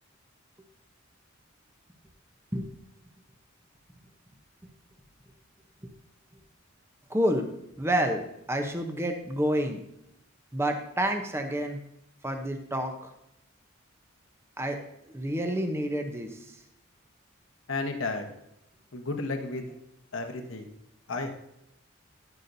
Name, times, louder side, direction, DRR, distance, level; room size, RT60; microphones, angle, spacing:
voice 1, 7.1-7.5 7.8-9.8 10.5-11.8 12.2-13.1 14.6-14.8 15.1-16.5, equal, 10° right, 5 dB, 0.8 m, -29 dB
voice 2, 17.7-18.3 18.9-19.7 20.1-20.6 21.1-21.3, left 3 dB, 70° left, 4 dB, 1.1 m, -32 dB
11.0 x 10.5 x 2.7 m, 0.80 s
head